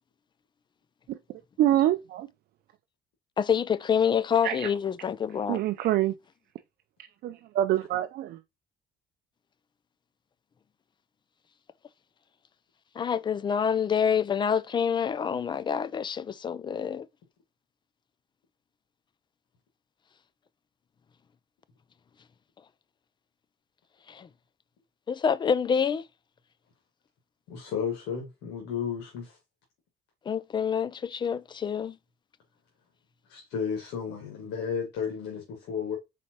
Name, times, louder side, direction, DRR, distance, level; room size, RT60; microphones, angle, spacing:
voice 1, 1.6-2.3 4.4-4.7 5.5-6.1 7.2-8.4, right 13 dB, 65° right, 0.4 m, -25 dB
voice 2, 3.4-5.6 13.0-17.1 24.1-24.3 25.1-26.1 30.3-32.0, left 7 dB, 25° left, 0.4 m, -27 dB
voice 3, 27.5-29.4 33.3-36.0, left 7 dB, 85° left, 1.5 m, -33 dB
4.3 x 4.2 x 2.8 m
cardioid pair, 110°, 17 cm